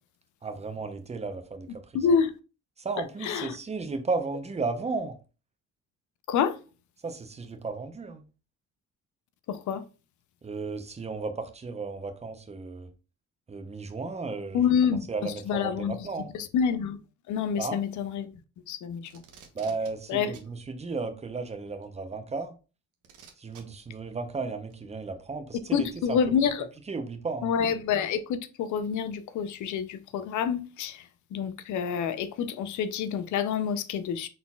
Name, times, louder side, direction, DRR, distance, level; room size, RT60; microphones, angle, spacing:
voice 1, 0.4-1.8 2.8-5.2 7.0-8.2 10.4-12.9 13.5-16.3 17.6-17.8 19.5-22.5 23.4-26.2 26.9-27.5, right 4 dB, 20° right, 0.7 m, -34 dB
voice 2, 1.9-2.3 3.2-3.6 6.3-6.6 9.5-9.8 14.5-16.0 16.3-17.0 17.3-18.3 18.7-19.2 20.1-20.3 25.7-26.7 27.4-31.0 31.3-34.3, left 7 dB, 75° left, 0.6 m, -27 dB
Packing tape duct tape, 19.0-19.9 20.3-20.5 21.8-21.9 23.0-23.6 24.7-24.8, right 7 dB, 80° right, 1.0 m, -50 dB
4.1 x 3.9 x 2.3 m
cardioid pair, 90°, 30 cm